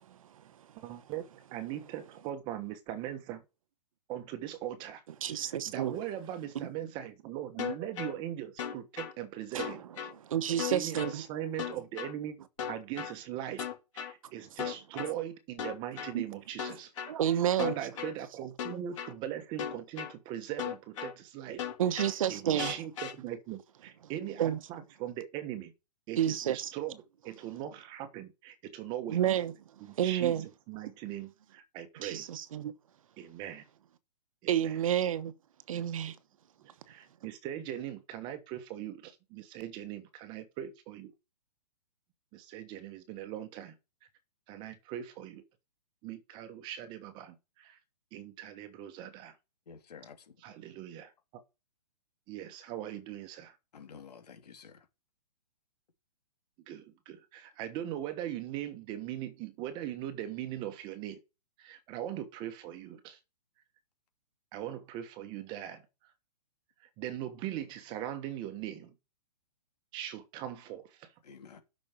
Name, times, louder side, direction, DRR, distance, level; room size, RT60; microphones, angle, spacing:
voice 1, 0.8-1.2 1.5-3.4 4.1-5.0 5.4-9.8 10.7-12.4 12.7-13.7 13.9-16.9 17.6-21.7 22.3-25.7 26.1-29.2 29.8-30.3 30.7-32.3 33.2-33.7 34.4-34.8 35.7-36.1 36.9-41.1 42.3-43.7 44.5-45.4 46.0-47.8 48.1-49.3 50.4-51.4 52.3-53.6 56.7-61.2 61.6-63.2 64.5-65.8 67.0-68.9 69.9-71.1, right 11 dB, 20° right, 1.2 m, -40 dB
voice 2, 5.2-6.0 9.5-9.7 10.2-11.2 16.1-16.3 17.0-17.8 21.8-22.7 24.4-24.6 26.2-26.7 29.1-29.5 30.0-30.4 32.0-32.7 34.5-35.3 35.7-36.2, right 10 dB, 55° right, 1.0 m, -30 dB
sound 1, 7.6-8.1 8.6-9.1 9.6-10.1 10.6-11.1 11.6-12.1 12.6-13.1 13.6-14.1 14.6-15.1 15.6-16.1 16.6-17.1 17.6-18.1 18.6-19.1 19.6-20.1 20.6-21.1 21.6-22.1 22.6-23.1, left 9 dB, 50° left, 3.2 m, -36 dB
voice 3, 49.7-50.4 53.7-54.8 71.2-71.6, left 6 dB, 70° left, 3.1 m, -51 dB
8.6 x 6.3 x 5.6 m
hypercardioid pair, 160°, 21 cm